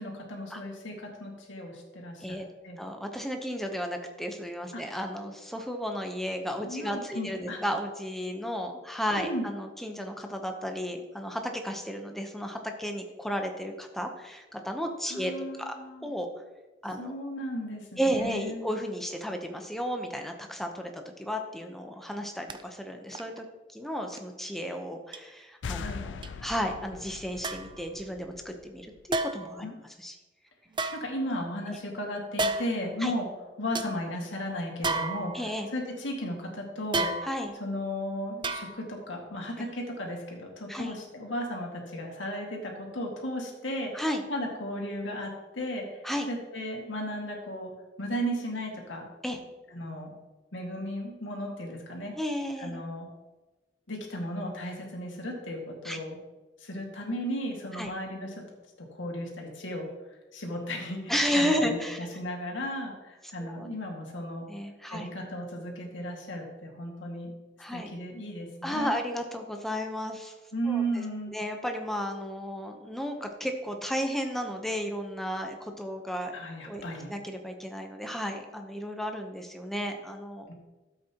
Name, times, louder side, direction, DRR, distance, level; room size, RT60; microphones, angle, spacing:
voice 1, 0.0-2.4 2.6-2.8 4.7-4.8 6.7-7.6 9.2-9.5 15.1-16.1 17.0-18.6 25.7-26.0 29.6-29.8 30.9-33.3 33.6-35.5 35.7-37.1 37.6-44.0 44.3-47.7 48.0-49.1 49.7-50.1 50.5-52.2 52.6-53.1 53.9-56.2 56.6-58.3 58.8-59.9 60.3-64.5 64.9-67.3 67.7-69.0 70.5-71.3 76.3-77.1 80.5-80.6, equal, 90° left, 0 dB, 2.0 m, -35 dB
voice 2, 2.8-15.3 15.6-15.7 16.0-16.3 16.8-17.1 18.0-23.5 23.7-29.7 30.0-30.1 33.0-33.1 35.3-35.7 37.2-37.5 40.7-41.0 43.9-44.2 46.0-46.3 49.2-49.4 52.2-52.8 55.8-56.0 57.7-57.9 61.1-62.0 63.4-63.7 64.5-65.1 67.6-67.9 68.6-70.3 70.7-70.8 71.3-76.4 76.6-76.8 77.1-80.5, equal, ahead, 4 dB, 0.9 m, -33 dB
sound 1, 22.5-22.6 23.1-23.4 24.1-24.2 25.1-25.2 26.2-26.3 27.4-27.8 29.1-29.6 30.7-31.6 32.4-32.9 33.3-33.4 33.7-33.9 34.8-35.7 36.9-37.6 38.4-39.0 39.3-39.4, right 2 dB, 25° right, 0.5 m, -32 dB
sound 2, 25.6-29.1, left 5 dB, 75° left, 0.4 m, -41 dB
12.0 x 7.9 x 3.0 m, 1.1 s
head